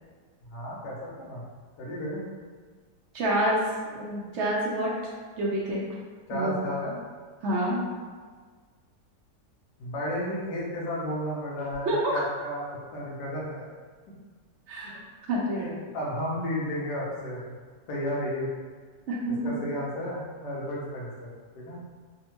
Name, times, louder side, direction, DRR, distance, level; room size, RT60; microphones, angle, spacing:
voice 1, 0.5-1.4 1.8-2.3 6.3-7.0 9.8-13.7 15.9-17.4 17.9-18.5 19.4-21.3 21.5-21.8, equal, 80° left, -5 dB, 1.4 m, -33 dB
voice 2, 3.1-3.6 3.9-4.9 5.4-5.8 6.3-6.5 7.4-7.9 11.8-12.2 14.7-14.9 15.3-15.8 19.1-19.4, right 1 dB, 60° right, -5 dB, 0.8 m, -27 dB
3.5 x 2.1 x 2.9 m, 1.6 s
omnidirectional pair, 1.8 m